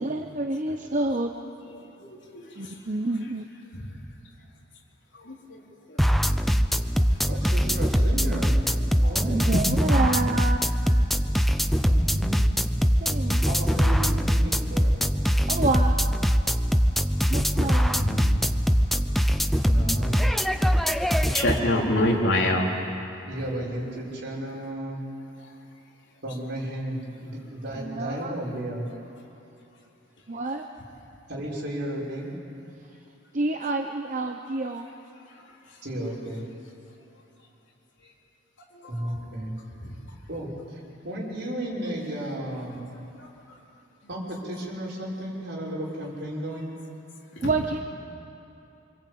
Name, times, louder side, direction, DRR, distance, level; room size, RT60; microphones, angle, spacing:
voice 1, 0.0-1.3 2.5-3.5 9.2-10.6 13.0-13.4 15.5-16.0 17.3-18.0 27.8-28.4 30.3-30.7 33.3-34.9 47.4-47.8, right 2 dB, 40° right, 4 dB, 0.9 m, -28 dB
voice 2, 2.3-2.7 3.7-3.8 5.1-5.4 5.9-6.5 7.0-7.1 9.5-9.6 13.8-14.0 18.0-18.5 18.9-19.0 21.2-22.7 38.7-39.2 39.8-40.0 43.2-43.3 47.4-47.5, left 1 dB, 60° left, -1 dB, 4.1 m, -27 dB
sound 1, 6.0-21.6, equal, ahead, 0.7 m, -22 dB
voice 3, 7.3-8.6 8.9-10.0 11.8-12.4 13.4-15.0 19.6-20.4 22.0-22.1 23.3-25.0 26.2-28.9 31.3-32.3 35.8-36.5 38.9-39.6 40.3-42.9 44.1-46.8, right 1 dB, 55° right, -3 dB, 6.4 m, -33 dB
26.5 x 25.5 x 8.7 m, 2.9 s
head